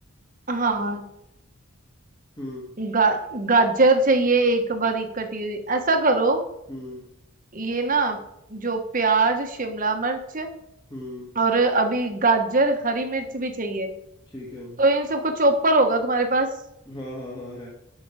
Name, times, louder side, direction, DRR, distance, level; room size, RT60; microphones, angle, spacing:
voice 1, 0.5-1.0 2.8-6.4 7.5-8.2 8.5-10.5 11.4-13.9 14.8-16.5, right 3 dB, 40° right, 5 dB, 1.4 m, -22 dB
voice 2, 2.4-2.8 6.7-7.1 10.9-11.4 14.3-14.8 16.9-17.7, left 1 dB, 20° left, -5 dB, 2.2 m, -37 dB
12.5 x 6.2 x 5.0 m, 0.82 s
head